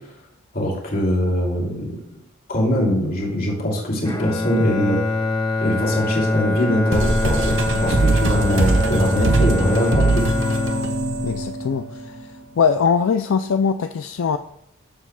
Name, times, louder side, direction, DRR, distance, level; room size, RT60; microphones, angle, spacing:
voice 1, 0.5-2.0 2.5-5.0 5.6-10.2, equal, 45° left, -1 dB, 2.5 m, -22 dB
Bowed string instrument, 4.0-12.3, left 2 dB, 20° left, 1.0 m, -24 dB
sound 1, 6.9-12.2, right 2 dB, 60° right, 1.0 m, -21 dB
voice 2, 11.2-14.4, left 6 dB, 70° left, 8 dB, 0.4 m, -21 dB
13.5 x 7.3 x 2.3 m, 0.74 s
head